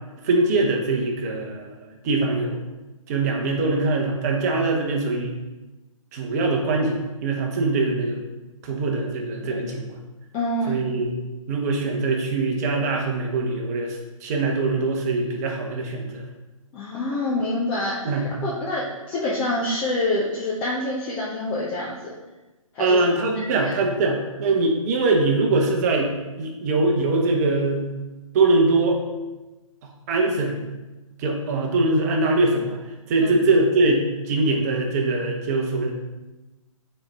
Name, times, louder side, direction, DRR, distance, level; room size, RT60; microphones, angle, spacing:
voice 1, 0.2-2.6 3.1-5.3 6.1-8.2 8.6-9.9 10.7-11.2 11.5-16.2 18.0-18.3 22.8-26.1 26.4-27.8 28.3-29.0 30.1-30.7 31.2-32.8 33.1-35.9, right 2 dB, 30° right, 1 dB, 1.0 m, -22 dB
voice 2, 10.3-10.8 16.7-22.1 22.7-23.0 23.3-23.7 33.2-33.3, left 1 dB, 10° left, -5 dB, 0.3 m, -27 dB
8.8 x 4.4 x 3.4 m, 1.1 s
figure-of-eight pair, 140°, 18 cm